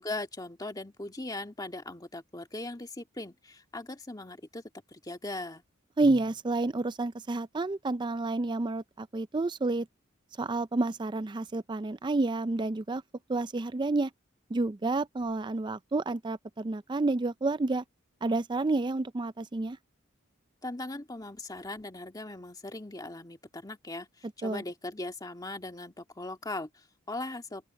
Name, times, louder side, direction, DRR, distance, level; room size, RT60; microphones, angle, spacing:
voice 1, 0.0-4.6 4.9-5.6 20.6-27.7, left 2 dB, 20° left, 1.9 m, -39 dB
voice 2, 6.0-9.9 10.4-13.0 13.3-14.1 14.5-17.8 18.2-19.8 24.4-24.6, right 2 dB, 25° right, 0.4 m, -29 dB
open air
head